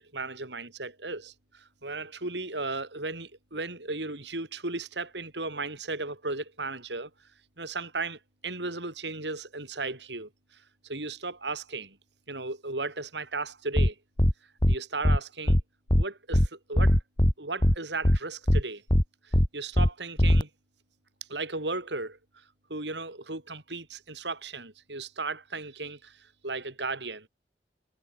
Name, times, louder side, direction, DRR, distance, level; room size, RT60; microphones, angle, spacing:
voice 1, 0.0-7.1 7.6-12.0 12.3-14.0 14.7-15.6 16.0-17.0 17.4-18.8 19.2-20.5 21.3-22.4 22.7-27.3, right 3 dB, 80° right, 5.7 m, -36 dB
sound 1, 13.8-13.9 14.2-14.3 14.6-14.8 15.0-15.2 15.5-15.6 15.9-16.0 16.3-16.5 16.8-17.3 17.6-17.8 18.0-18.2 18.5-18.6 18.9-19.0 19.3-19.5 19.8-19.9 20.2-20.4, left 1 dB, 25° left, 1.7 m, -20 dB
head